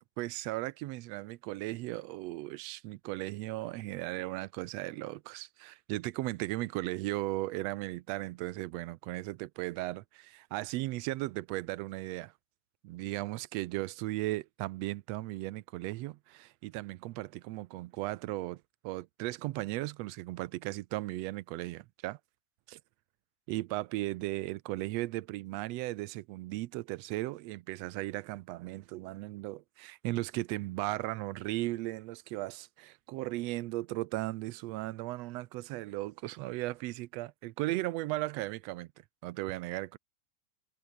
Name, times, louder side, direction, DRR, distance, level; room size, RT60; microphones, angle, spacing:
voice 1, 0.0-12.3 12.8-22.2 22.7-22.8 23.5-38.9 39.2-40.0, right 18 dB, 80° right, 1.6 m, -36 dB
omnidirectional pair, 3.4 m